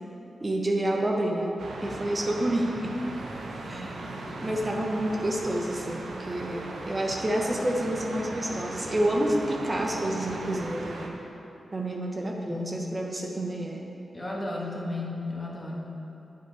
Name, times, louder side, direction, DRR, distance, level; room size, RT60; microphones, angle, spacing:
voice 1, 0.4-3.0 3.7-4.0 4.4-11.1 11.7-13.9, right 1 dB, 35° right, 0 dB, 0.9 m, -29 dB
sound 1, 1.6-11.1, right 2 dB, 80° right, 0.8 m, -38 dB
voice 2, 3.6-4.7 12.2-12.9 14.1-16.0, left 2 dB, 25° left, -3 dB, 1.6 m, -36 dB
8.1 x 6.5 x 4.1 m, 2.9 s
cardioid pair, 45°, 0 cm